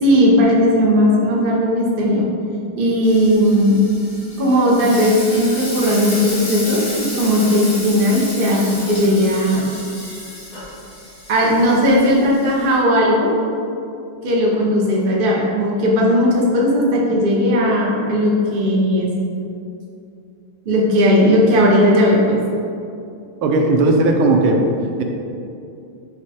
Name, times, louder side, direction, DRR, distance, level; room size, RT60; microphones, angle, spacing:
voice 1, 0.0-2.3 2.8-3.8 4.4-9.7 11.3-13.3 14.2-19.1 20.7-22.4, equal, 60° right, -3 dB, 0.5 m, -16 dB
Frying (food), 3.0-12.8, left 1 dB, 45° left, 2.1 m, -32 dB
voice 2, 23.4-24.6, right 2 dB, 80° right, 2 dB, 1.5 m, -15 dB
4.8 x 4.8 x 4.2 m, 2.6 s
omnidirectional pair, 2.3 m